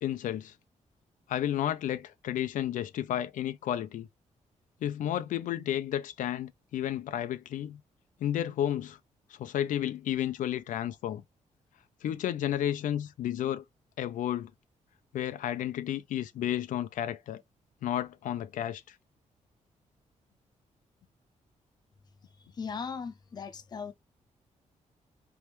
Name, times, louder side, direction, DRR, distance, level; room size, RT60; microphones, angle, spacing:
voice 1, 0.0-0.5 1.3-4.1 4.8-7.8 8.2-9.0 9.3-11.2 12.0-13.6 14.0-14.5 15.1-17.4 17.8-18.9, left 11 dB, 85° left, 0.5 m, -32 dB
voice 2, 22.6-23.9, left 6 dB, 30° left, 0.7 m, -38 dB
4.2 x 3.5 x 3.0 m
wide cardioid pair, 165°, 13 cm